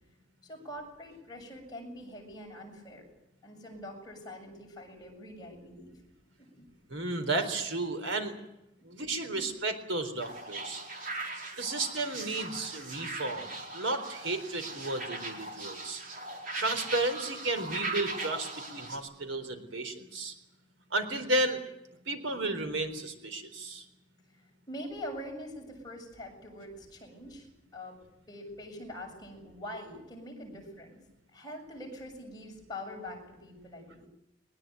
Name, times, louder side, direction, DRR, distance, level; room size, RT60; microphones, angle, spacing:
voice 1, 0.4-3.0 3.4-5.9 6.6-6.7 9.3-9.5 11.0-11.1 24.7-27.5 27.7-28.0 28.3-31.0 31.3-34.1, left 1 dB, 20° left, 0 dB, 7.0 m, -44 dB
voice 2, 6.9-8.3 8.8-10.8 11.6-16.0 16.6-20.3 20.9-21.6 22.1-23.9, right 2 dB, 90° right, 8 dB, 4.0 m, -33 dB
sound 1, 10.2-19.0, right 2 dB, 45° right, 4.3 m, -39 dB
21.5 x 20.5 x 9.2 m, 0.88 s
head